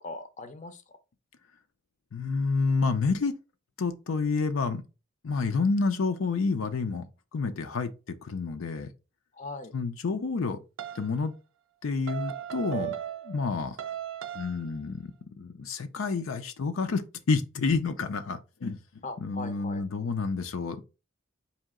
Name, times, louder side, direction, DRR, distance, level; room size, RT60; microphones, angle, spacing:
voice 1, 0.0-0.8 9.3-9.7 19.0-19.8, left 3 dB, 40° left, 0.5 m, -40 dB
voice 2, 2.1-3.3 3.8-4.8 5.2-7.1 7.3-8.9 9.7-10.6 10.9-11.3 11.8-13.0 13.2-13.8 14.3-18.8 19.2-20.9, left 4 dB, 85° left, 0.5 m, -29 dB
sound 1, 10.8-11.1 12.1-13.5 13.8-14.7, right 11 dB, 75° right, 0.4 m, -36 dB
4.2 x 2.8 x 3.6 m
head